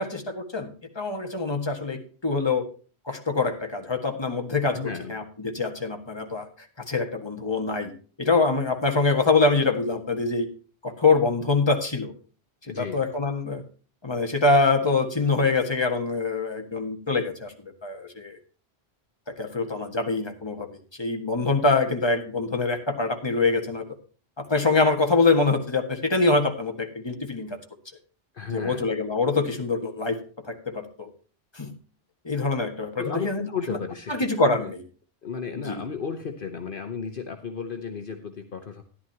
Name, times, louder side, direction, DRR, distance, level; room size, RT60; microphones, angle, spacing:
voice 1, 0.0-2.7 3.1-4.8 5.1-6.5 6.9-7.9 8.2-10.5 10.8-12.1 12.8-13.6 14.0-18.4 19.3-20.7 21.0-23.8 24.4-27.6 28.5-30.2 30.5-31.1 31.5-31.7 32.2-33.4 33.7-33.8 34.1-34.8 35.5-35.8, left 3 dB, 25° left, 4 dB, 1.8 m, -24 dB
voice 2, 4.7-5.2 12.6-13.0 28.3-28.9 33.0-34.2 34.4-34.7 35.2-38.8, left 6 dB, 55° left, 5 dB, 1.2 m, -34 dB
14.5 x 11.0 x 2.9 m, 0.38 s
omnidirectional pair, 1.1 m